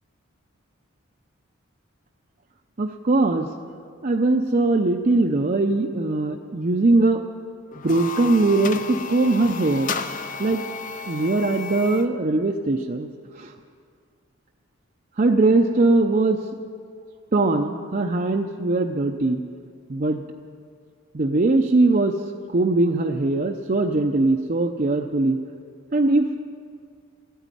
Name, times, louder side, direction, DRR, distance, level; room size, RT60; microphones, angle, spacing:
voice 1, 2.8-3.5 4.0-7.2 7.8-9.9 10.4-10.6 11.1-13.1 13.4-13.5 15.2-16.4 17.3-19.4 19.9-20.2 21.1-22.2 22.5-25.4 25.9-26.3, right 2 dB, 40° right, 2 dB, 0.6 m, -21 dB
sound 1, 7.7-12.1, left 5 dB, 40° left, 0.6 m, -33 dB
14.0 x 9.2 x 9.8 m, 2.2 s
head